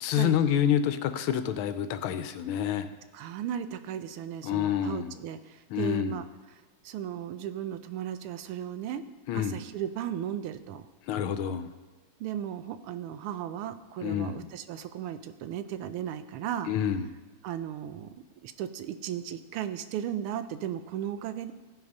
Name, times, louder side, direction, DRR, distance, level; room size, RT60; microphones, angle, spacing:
voice 1, 0.0-2.9 4.4-5.1 5.7-6.2 9.3-9.6 11.1-11.7 14.0-14.4 16.7-17.0, left 9 dB, 80° left, 10 dB, 1.4 m, -28 dB
voice 2, 3.1-9.0 9.3-10.9 12.2-16.7 17.4-18.1 18.4-21.5, right 10 dB, 80° right, 11 dB, 1.5 m, -36 dB
14.0 x 6.0 x 5.3 m, 1.3 s
omnidirectional pair, 2.4 m